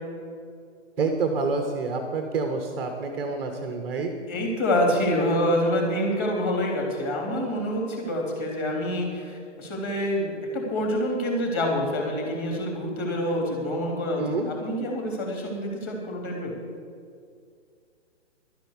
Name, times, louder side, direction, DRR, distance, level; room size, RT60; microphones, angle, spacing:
voice 1, 1.0-4.1 14.2-14.5, right 4 dB, 5° right, 4 dB, 0.4 m, -28 dB
voice 2, 4.3-16.5, left 1 dB, 25° left, 0 dB, 3.3 m, -27 dB
12.0 x 10.0 x 6.8 m, 2.3 s
hypercardioid pair, 140°, 36 cm